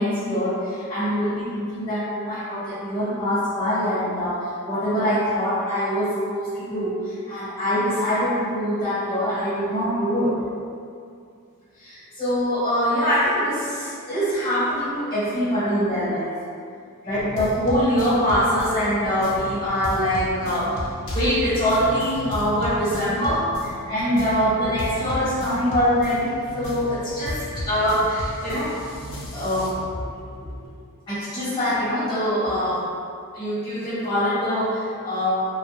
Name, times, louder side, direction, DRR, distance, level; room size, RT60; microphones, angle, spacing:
voice 1, 0.0-10.3 11.8-16.3 17.1-20.8 21.1-23.5 23.9-28.7 29.3-30.0 30.4-30.5 31.1-32.9 33.3-35.5, equal, 20° left, -13 dB, 0.9 m, -24 dB
sound 1, 17.1-30.7, left 1 dB, 60° left, 0.5 m, -34 dB
2.2 x 2.1 x 2.9 m, 2.3 s
head